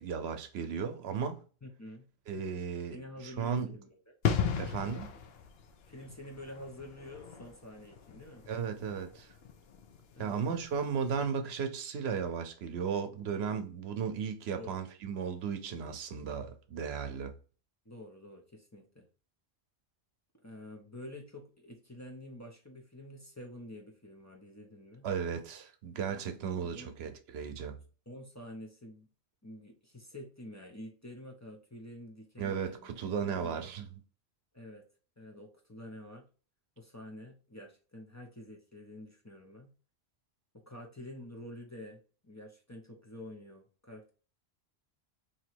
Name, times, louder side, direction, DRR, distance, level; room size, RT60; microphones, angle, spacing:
voice 1, 0.0-1.4 2.3-3.0 3.2-3.7 4.6-5.1 8.5-9.3 10.2-17.3 25.0-27.8 32.4-33.9, right 6 dB, 75° right, 0.9 m, -35 dB
voice 2, 1.6-2.1 2.9-4.0 5.9-8.5 10.1-10.4 14.5-14.8 17.9-19.0 20.4-25.1 26.6-26.9 28.1-29.1 29.4-32.9 33.2-33.7 34.5-34.8 35.2-36.3 36.8-39.7 40.5-44.1, left 1 dB, 20° left, 0.5 m, -48 dB
sound 1, 4.2-10.7 11.0-11.2, left 7 dB, 70° left, 0.8 m, -36 dB
2.9 x 2.7 x 4.4 m
omnidirectional pair, 1.1 m